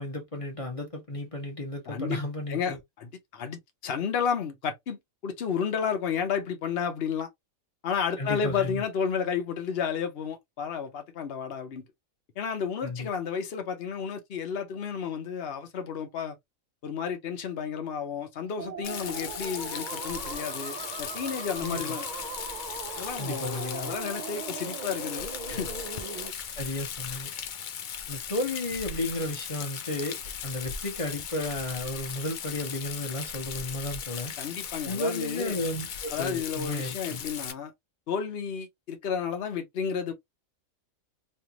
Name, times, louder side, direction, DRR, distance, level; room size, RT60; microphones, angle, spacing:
voice 1, 0.0-2.8 8.2-8.8 12.8-13.1 21.6-22.0 23.2-23.9 26.6-27.3 28.1-34.3 34.8-37.2, left 1 dB, 25° left, 1.2 m, -33 dB
voice 2, 1.9-2.2 2.5-5.0 5.2-7.3 7.8-11.8 12.4-16.4 16.8-22.1 23.0-25.7 34.4-35.6 36.1-37.7 38.1-40.1, left 7 dB, 50° left, 1.0 m, -32 dB
sound 1, 18.6-26.3, right 5 dB, 55° right, 0.5 m, -39 dB
Rain, 18.8-37.5, left 8 dB, 70° left, 0.4 m, -38 dB
3.3 x 2.5 x 2.8 m
omnidirectional pair, 1.4 m